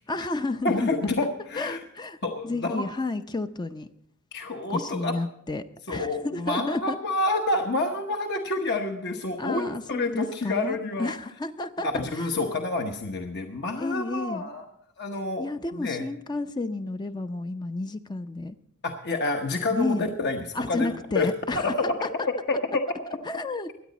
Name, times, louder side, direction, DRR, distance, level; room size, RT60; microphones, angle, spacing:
voice 1, 0.1-0.9 1.5-2.2 2.4-3.9 4.7-7.0 9.4-11.9 12.2-12.3 13.8-14.5 15.4-18.6 19.7-20.1 20.5-21.7 22.0-22.1 23.3-23.7, left 2 dB, 20° left, 9 dB, 0.5 m, -31 dB
voice 2, 0.6-1.8 2.2-2.8 4.3-5.1 5.9-11.1 11.8-14.6 15.0-15.4 15.7-16.0 18.8-21.3 21.6-21.9 22.2-22.8, left 2 dB, 50° left, 3 dB, 1.0 m, -28 dB
23.0 x 9.2 x 4.1 m, 0.73 s
head